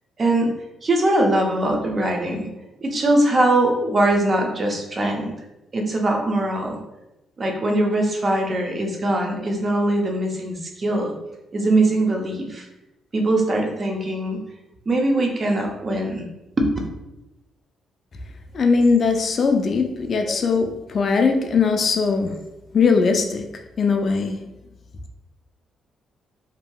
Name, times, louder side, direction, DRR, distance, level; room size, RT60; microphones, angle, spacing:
voice 1, 0.2-0.5 0.8-2.5 2.8-5.3 5.7-6.8 7.4-11.1 11.5-12.7 13.1-14.4 14.9-16.2 16.6-16.7 20.2-20.3, right 1 dB, 35° right, 2 dB, 0.6 m, -21 dB
voice 2, 18.5-22.3 22.7-23.4 23.8-24.4, left 4 dB, 50° left, 4 dB, 0.3 m, -20 dB
2.8 x 2.6 x 2.3 m, 0.94 s
cardioid pair, 90°, 0 cm